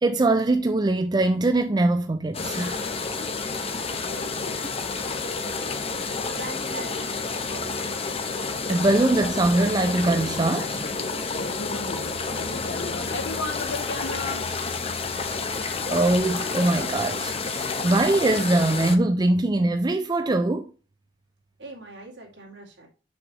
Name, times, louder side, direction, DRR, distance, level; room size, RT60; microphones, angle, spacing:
voice 1, 0.0-2.8 8.7-10.8 15.9-20.7, right 2 dB, 25° right, 0.4 m, -22 dB
sound 1, 2.3-19.0, left 4 dB, 35° left, 0.8 m, -30 dB
voice 2, 4.1-4.8 11.4-14.5, left 3 dB, 80° left, 1.3 m, -35 dB
voice 3, 6.2-7.9 21.6-22.9, right 1 dB, 70° right, 2.6 m, -41 dB
6.2 x 6.1 x 3.0 m
head